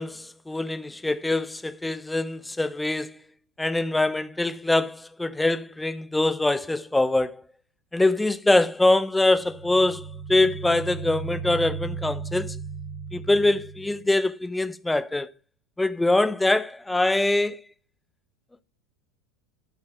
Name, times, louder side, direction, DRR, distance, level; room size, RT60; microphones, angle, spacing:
voice 1, 0.0-3.2 3.6-7.4 7.9-12.6 13.1-15.3 15.8-17.6, left 2 dB, 5° left, 1.0 m, -24 dB
sound 1, 9.3-14.0, right 5 dB, 55° right, 5.3 m, -36 dB
13.5 x 7.1 x 9.7 m
figure-of-eight pair, 80°, 0 cm